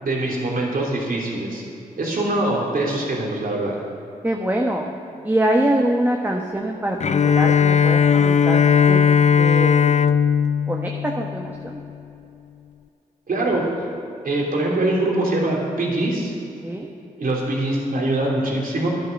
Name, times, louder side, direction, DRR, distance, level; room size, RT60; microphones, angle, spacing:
voice 1, 0.0-1.6 2.0-3.7 13.3-13.7 14.2-16.3 17.2-18.9, right 2 dB, 60° right, -3 dB, 3.2 m, -23 dB
voice 2, 4.2-4.9 5.2-7.0 7.2-9.0 9.4-10.0 10.7-11.8 16.6-16.9, right 1 dB, 10° right, 1 dB, 1.3 m, -24 dB
Bowed string instrument, 7.0-11.9, left 7 dB, 45° left, 0.4 m, -17 dB
10.5 x 10.5 x 6.6 m, 2.7 s
supercardioid pair, 45°, 16 cm